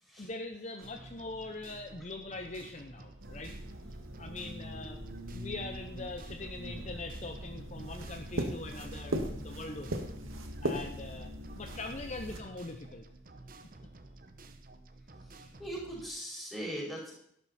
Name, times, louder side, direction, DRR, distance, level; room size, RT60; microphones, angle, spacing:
voice 1, 0.2-3.6 4.2-5.0 5.3-10.1 10.6-13.1, left 2 dB, 35° left, 5 dB, 0.8 m, -42 dB
sound 1, 0.8-16.1, right 2 dB, 45° right, 1.0 m, -53 dB
sound 2, 3.2-12.4, right 1 dB, 85° right, 1.8 m, -39 dB
voice 2, 15.2-17.1, equal, ahead, -5 dB, 5.3 m, -40 dB
12.5 x 12.0 x 4.2 m, 0.68 s
head